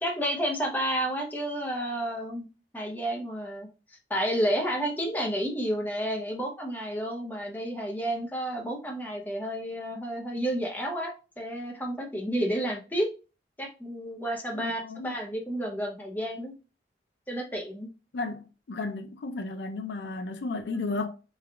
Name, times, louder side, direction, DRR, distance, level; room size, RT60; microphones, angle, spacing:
voice 1, 0.0-2.5 2.7-3.7 4.1-13.1 13.6-16.5 17.3-17.9, equal, 10° left, 0.6 m, -31 dB
voice 2, 14.5-15.1 18.1-21.1, left 3 dB, 70° left, 0.4 m, -33 dB
3.3 x 2.3 x 3.4 m
head